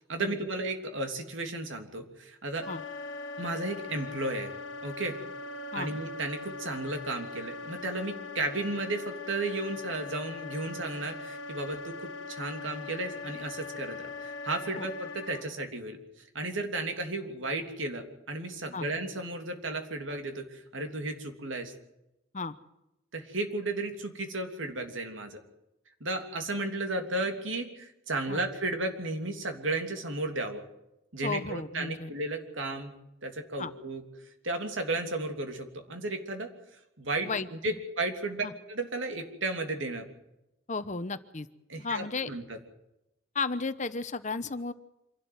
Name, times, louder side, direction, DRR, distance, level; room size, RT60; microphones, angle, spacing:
voice 1, 0.1-2.7 3.4-4.5 4.8-5.1 5.7-16.0 16.3-21.7 23.1-25.4 26.0-30.6 31.1-32.9 33.2-34.0 34.4-36.5 37.0-40.1 41.7-42.6, right 2 dB, 70° right, 5 dB, 3.1 m, -34 dB
Wind instrument woodwind instrument, 2.6-15.5, left 3 dB, 65° left, 1.7 m, -41 dB
voice 2, 31.2-32.1 33.6-33.7 37.2-37.7 38.4-38.5 40.7-41.5 41.8-42.3 43.3-44.7, left 4 dB, 35° left, 12 dB, 0.9 m, -34 dB
26.5 x 12.5 x 9.4 m, 0.89 s
head